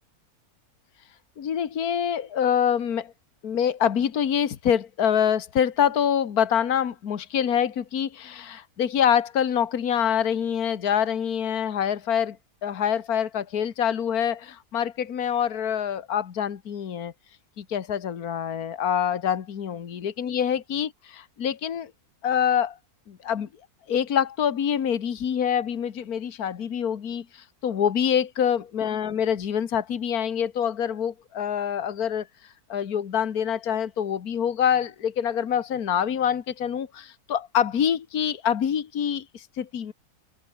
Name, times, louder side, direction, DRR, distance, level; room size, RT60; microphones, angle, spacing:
voice 1, 1.4-3.1 3.4-12.4 12.6-17.1 17.6-19.8 20.2-21.9 22.2-22.8 23.1-23.5 23.9-32.3 32.7-39.9, left 8 dB, 70° left, 1.8 m, -25 dB
omnidirectional pair, 1.6 m